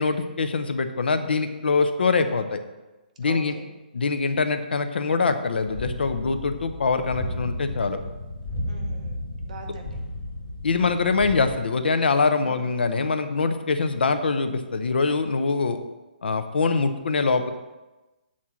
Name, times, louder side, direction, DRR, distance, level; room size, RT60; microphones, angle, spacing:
voice 1, 0.0-2.6 3.2-3.5 3.9-8.0 10.6-15.8 16.2-17.5, left 4 dB, 75° left, 8 dB, 0.8 m, -23 dB
voice 2, 3.2-3.7 8.6-10.0 10.8-10.9 12.4-12.8, right 4 dB, 40° right, 2 dB, 1.0 m, -43 dB
sound 1, 5.7-11.6, left 1 dB, 30° left, 2.6 m, -34 dB
7.4 x 4.3 x 6.2 m, 1.1 s
hypercardioid pair, 180°, 6 cm